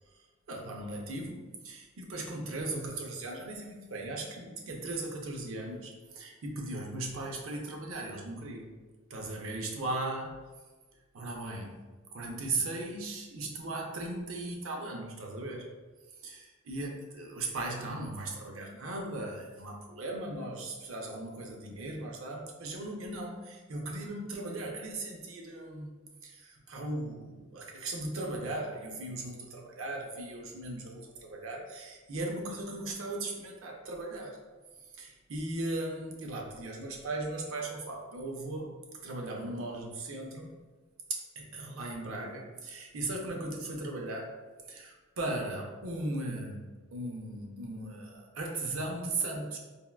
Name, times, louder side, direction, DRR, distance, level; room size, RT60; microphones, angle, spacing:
voice 1, 0.5-8.7 9.1-10.4 11.1-11.8 12.1-15.7 16.2-25.9 26.2-34.4 35.0-38.7 39.0-40.5 41.1-44.3 44.7-46.6 46.9-49.6, right 2 dB, 75° right, 0 dB, 0.5 m, -37 dB
3.5 x 2.2 x 2.3 m, 1.3 s
head